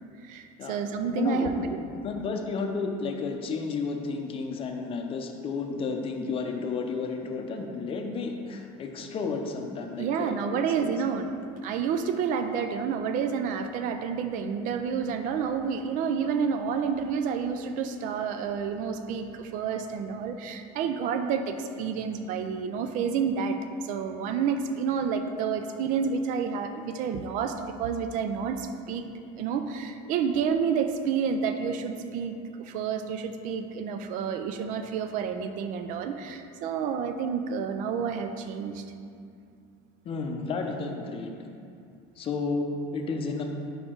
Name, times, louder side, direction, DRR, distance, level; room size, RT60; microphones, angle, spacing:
voice 1, 0.2-1.5 10.0-29.1 29.4-38.8, right 6 dB, 60° right, 8 dB, 0.4 m, -29 dB
voice 2, 1.1-10.4 10.8-10.9 40.0-41.4 42.2-42.7 42.9-43.4, left 4 dB, 35° left, 3 dB, 0.6 m, -32 dB
5.0 x 4.3 x 4.5 m, 2.5 s
cardioid pair, 125°, 15 cm